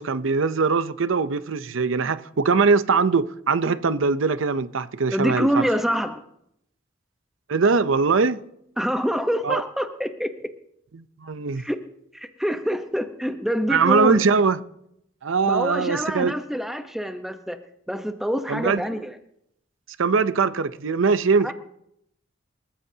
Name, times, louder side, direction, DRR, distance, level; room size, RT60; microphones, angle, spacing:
voice 1, 0.0-5.5 7.5-8.4 9.4-9.6 11.0-11.6 13.7-14.6 15.2-16.3 18.5-18.8 20.0-21.5, right 4 dB, 85° right, 0.6 m, -21 dB
voice 2, 5.1-6.2 8.8-10.3 11.6-11.8 12.1-14.2 15.4-17.6 17.9-19.2 21.4-21.5, equal, ahead, 0.9 m, -26 dB
28.0 x 14.5 x 2.8 m
head